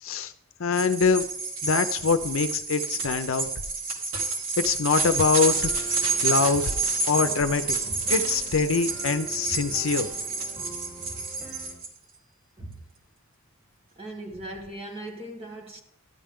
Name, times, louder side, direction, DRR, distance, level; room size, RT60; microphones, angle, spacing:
voice 1, 0.0-0.3 0.6-1.3 1.6-3.5 4.6-5.7 6.2-6.6 7.1-7.8 8.1-10.1, left 5 dB, 70° left, 0.7 m, -24 dB
sound 1, 0.7-11.9, right 4 dB, 75° right, 2.3 m, -29 dB
sound 2, 5.3-11.7, right 1 dB, 5° right, 4.1 m, -44 dB
voice 2, 13.9-15.8, right 1 dB, 25° right, 1.7 m, -39 dB
12.5 x 10.0 x 3.7 m
head